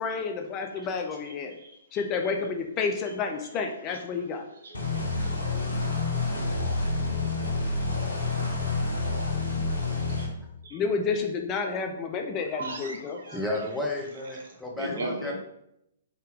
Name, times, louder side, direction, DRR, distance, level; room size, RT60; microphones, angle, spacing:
voice 1, 0.0-1.5 1.9-4.4 10.7-13.2, left 5 dB, 25° left, 4 dB, 0.3 m, -30 dB
voice 2, 1.6-2.3 3.5-3.6 3.9-5.1 9.9-10.3 10.6-10.8 12.5-13.5 14.2-14.4 14.8-15.3, right 2 dB, 55° right, 1 dB, 0.8 m, -39 dB
sound 1, 4.7-10.3, left 3 dB, 75° left, 0.9 m, -28 dB
voice 3, 13.3-15.3, left 1 dB, 5° left, -3 dB, 0.8 m, -32 dB
3.6 x 2.7 x 3.4 m, 0.80 s
figure-of-eight pair, 120°, 0 cm